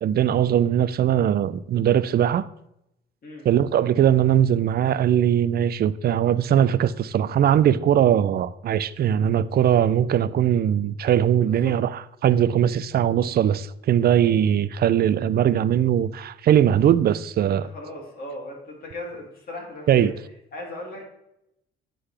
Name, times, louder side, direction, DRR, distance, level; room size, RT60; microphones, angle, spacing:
voice 1, 0.0-2.5 3.4-11.9 12.2-17.7 19.9-20.1, right 10 dB, 50° right, 0.4 m, -20 dB
voice 2, 17.4-20.2 20.5-21.0, left 1 dB, 50° left, 2.6 m, -37 dB
9.8 x 3.8 x 3.3 m
cardioid pair, 90°, 20 cm